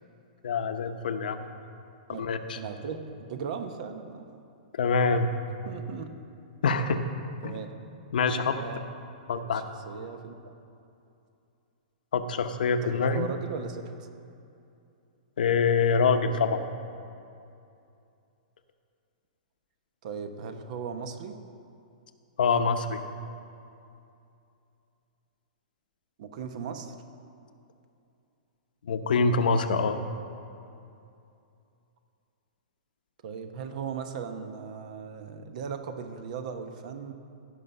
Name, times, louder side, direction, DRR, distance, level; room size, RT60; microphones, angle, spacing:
voice 1, 0.4-1.4 2.2-2.6 4.7-5.3 6.6-7.0 7.4-7.5 8.1-8.6 9.3-9.6 12.1-13.3 15.4-16.6 22.4-23.0 28.9-30.0, left 4 dB, 80° left, 8 dB, 0.8 m, -25 dB
voice 2, 2.5-4.3 5.6-6.2 7.4-7.7 8.5-8.8 9.3-10.3 12.8-13.9 20.0-21.4 26.2-26.9 33.2-37.1, right 6 dB, 55° right, 8 dB, 1.0 m, -37 dB
16.5 x 5.7 x 5.5 m, 2.6 s
hypercardioid pair, 145°, 5 cm